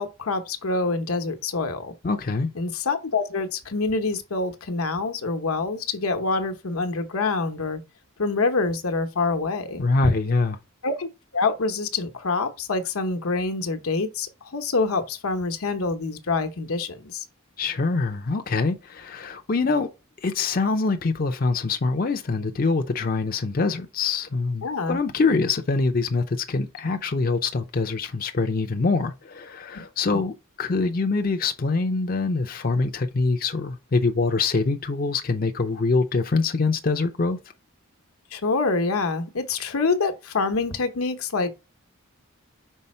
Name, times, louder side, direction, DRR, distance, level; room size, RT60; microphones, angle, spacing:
voice 1, 0.0-1.9 2.5-7.8 8.2-10.1 10.8-17.2 24.6-25.0 29.7-29.8 30.1-30.2 38.3-41.5, left 3 dB, 85° left, 0.9 m, -26 dB
voice 2, 2.0-2.5 9.8-10.6 17.6-19.9 20.2-37.4, left 3 dB, 40° left, 0.5 m, -24 dB
5.5 x 4.2 x 4.3 m
head